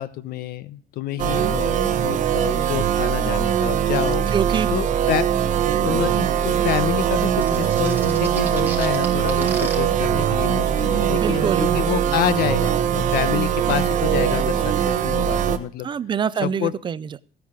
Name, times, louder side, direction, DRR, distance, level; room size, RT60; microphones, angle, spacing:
voice 1, 0.0-4.3 4.7-5.3 5.8-15.9 16.4-16.7, left 12 dB, 80° left, 16 dB, 1.1 m, -28 dB
sound 1, 1.2-15.6, right 9 dB, 50° right, 1.2 m, -21 dB
voice 2, 4.3-4.7 10.9-11.9 15.8-17.2, right 7 dB, 30° right, 18 dB, 0.5 m, -25 dB
sound 2, 6.2-14.5, left 4 dB, 50° left, 4.0 m, -44 dB
sound 3, 7.4-9.7, right 4 dB, 10° right, 4.5 m, -34 dB
15.5 x 9.4 x 4.9 m, 0.43 s
cardioid pair, 170°, 16 cm